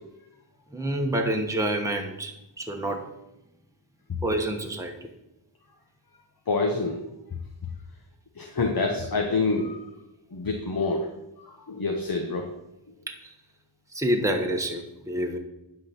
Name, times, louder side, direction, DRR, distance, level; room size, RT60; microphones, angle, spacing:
voice 1, 0.7-3.0 4.2-5.1 13.1-13.3 13.9-15.4, right 1 dB, 5° right, 2 dB, 1.2 m, -28 dB
voice 2, 6.5-6.9 8.4-9.8 10.3-11.1 11.7-12.5, left 3 dB, 45° left, 3 dB, 1.2 m, -26 dB
10.5 x 4.0 x 7.1 m, 0.91 s
wide cardioid pair, 55°, 48 cm